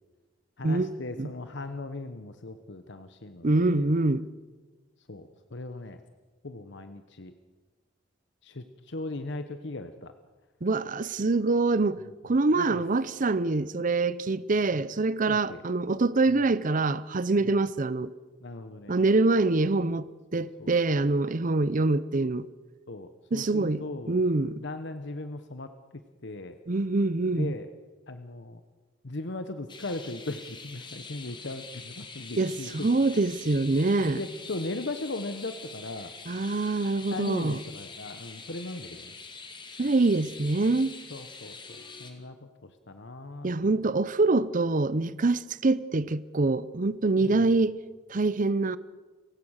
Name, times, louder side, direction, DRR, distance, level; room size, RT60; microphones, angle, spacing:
voice 1, 0.6-3.9 5.1-6.0 6.4-7.3 8.4-10.1 12.5-12.8 15.3-15.6 16.3-16.4 17.4-17.5 18.4-19.0 20.3-21.1 21.6-21.8 22.9-24.2 24.6-25.7 26.2-26.6 27.4-27.7 28.1-28.6 29.0-32.9 34.0-36.1 37.1-39.1 41.1-43.5 47.2-47.5, left 2 dB, 65° left, 1.1 m, -38 dB
voice 2, 3.4-4.3 10.6-18.1 18.9-22.5 23.3-24.6 26.7-27.5 32.4-34.2 36.3-37.6 39.8-41.0 43.4-47.8 48.1-48.8, right 3 dB, 45° right, 0.7 m, -25 dB
sound 1, 29.7-42.1, left 4 dB, 25° left, 2.2 m, -45 dB
29.5 x 16.0 x 6.5 m
head